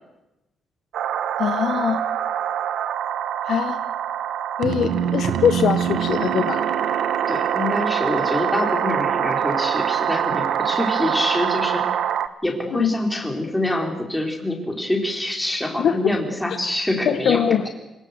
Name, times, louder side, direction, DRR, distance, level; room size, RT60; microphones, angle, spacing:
sound 1, 0.9-12.3, right 9 dB, 75° right, 1.2 m, -24 dB
voice 1, 1.4-2.0 3.4-3.8 4.6-6.6 12.7-12.9 15.8-16.0 17.1-17.7, left 8 dB, 55° left, 9 dB, 1.0 m, -22 dB
voice 2, 7.3-11.8 12.4-17.7, left 1 dB, 5° left, 1 dB, 3.7 m, -25 dB
27.0 x 18.0 x 8.1 m, 0.97 s
cardioid pair, 180°, 0 cm